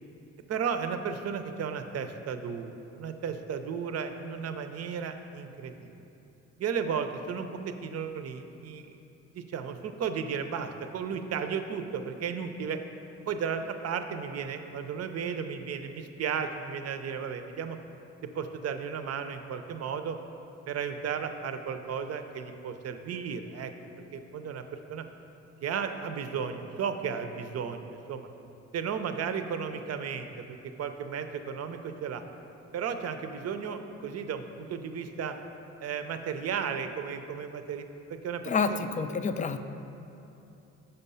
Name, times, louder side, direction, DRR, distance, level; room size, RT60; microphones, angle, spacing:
voice 1, 0.5-5.9 6.6-9.0 9.3-12.8 13.3-17.8 18.3-20.2 20.7-23.7 24.1-25.0 25.6-28.3 28.7-32.2 32.7-35.4 35.8-37.8 38.1-38.8, right 6 dB, 55° right, 8 dB, 0.6 m, -34 dB
voice 2, 38.4-39.6, left 5 dB, 25° left, 9 dB, 0.4 m, -28 dB
6.7 x 5.6 x 5.5 m, 2.9 s
cardioid pair, 90°, 30 cm